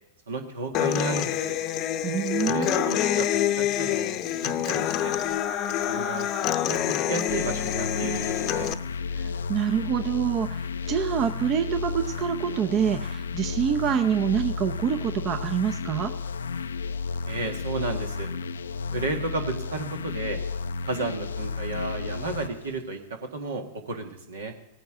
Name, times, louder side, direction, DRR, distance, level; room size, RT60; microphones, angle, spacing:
voice 1, 0.3-1.6 2.5-3.3 3.6-5.1 5.7-6.3 6.7-8.7 17.3-18.3 18.9-20.4 20.8-24.5, right 3 dB, 80° right, 4 dB, 1.8 m, -33 dB
Human voice / Acoustic guitar, 0.7-8.7, left 11 dB, 45° left, 0.7 m, -26 dB
voice 2, 2.0-2.9 9.1-16.1, right 8 dB, 40° right, 8 dB, 0.7 m, -26 dB
sound 1, 7.3-22.8, left 4 dB, 85° left, 0.4 m, -33 dB
18.0 x 9.1 x 3.7 m, 0.90 s
hypercardioid pair, 100°, 0 cm